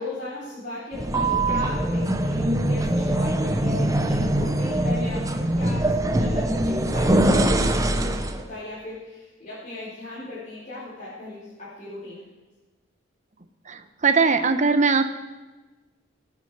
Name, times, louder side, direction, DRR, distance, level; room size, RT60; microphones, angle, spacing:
voice 1, 0.0-5.2 5.6-7.1 8.3-12.2, left 2 dB, 45° left, -10 dB, 4.4 m, -37 dB
sound 1, 0.9-8.4, right 1 dB, 20° right, 0.9 m, -22 dB
voice 2, 13.7-15.0, right 4 dB, 40° right, 8 dB, 1.0 m, -20 dB
22.0 x 8.3 x 4.9 m, 1.2 s
head